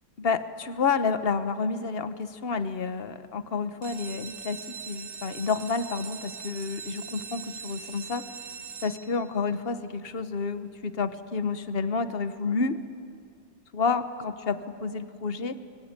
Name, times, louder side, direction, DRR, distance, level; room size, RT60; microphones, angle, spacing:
voice 1, 0.2-8.3 8.8-12.8 13.7-15.6, left 4 dB, 40° left, 10 dB, 1.1 m, -29 dB
sound 1, 3.7-9.4 10.1-10.5 10.9-11.0 11.3-11.4 11.8-11.9, right 6 dB, 65° right, 1.9 m, -41 dB
25.0 x 24.0 x 8.9 m, 2.3 s
omnidirectional pair, 2.0 m